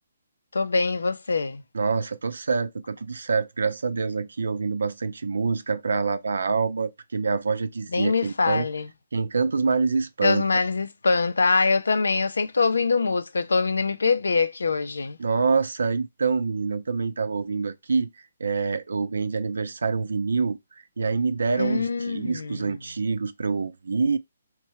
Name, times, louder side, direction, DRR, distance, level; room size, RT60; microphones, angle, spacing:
voice 1, 0.5-1.6 7.9-8.9 10.2-15.2 21.6-22.8, left 4 dB, 80° left, 0.4 m, -24 dB
voice 2, 1.7-8.6 9.1-10.5 15.2-18.1 18.4-20.6 21.0-24.2, right 4 dB, 75° right, 0.5 m, -26 dB
4.4 x 3.2 x 2.9 m
hypercardioid pair, 145°, 0 cm